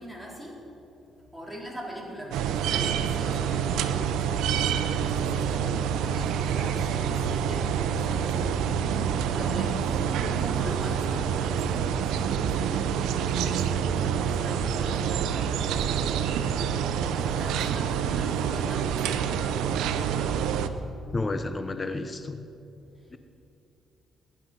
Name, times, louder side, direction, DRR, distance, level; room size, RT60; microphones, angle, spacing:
voice 1, 0.0-8.8 9.3-13.7 14.0-16.8 17.1-19.7, equal, ahead, -3 dB, 3.9 m, -42 dB
sound 1, 2.3-20.7, right 7 dB, 90° right, 0.7 m, -27 dB
voice 2, 21.1-22.5 23.1-23.2, left 2 dB, 30° left, 9 dB, 0.9 m, -31 dB
22.0 x 9.7 x 5.4 m, 2.8 s
cardioid pair, 90°, 0 cm